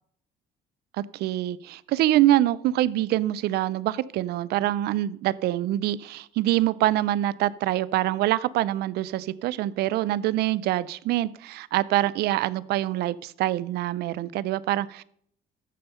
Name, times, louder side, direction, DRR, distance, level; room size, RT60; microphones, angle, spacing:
voice 1, 1.1-15.0, right 14 dB, 75° right, 20 dB, 0.5 m, -25 dB
14.0 x 5.5 x 5.5 m, 0.66 s
cardioid pair, 110°, 17 cm